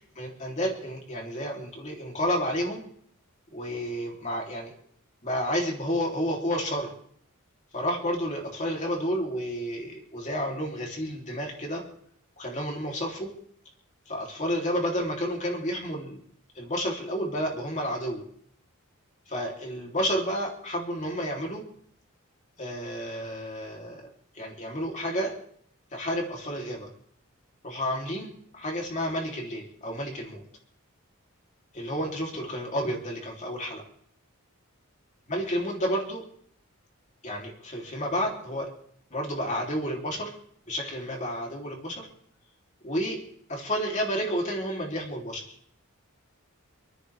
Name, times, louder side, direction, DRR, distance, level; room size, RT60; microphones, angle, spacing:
voice 1, 0.2-2.8 3.5-4.7 5.2-6.9 7.7-11.8 12.4-13.3 14.1-16.2 16.6-18.2 19.3-21.6 22.6-24.0 24.4-25.3 25.9-26.9 27.6-30.4 31.7-33.8 35.3-36.2 37.2-38.7 39.1-40.3 40.7-42.1 42.8-43.2 43.5-45.6, equal, 35° left, -1 dB, 3.6 m, -31 dB
28.0 x 10.0 x 3.6 m, 0.63 s
head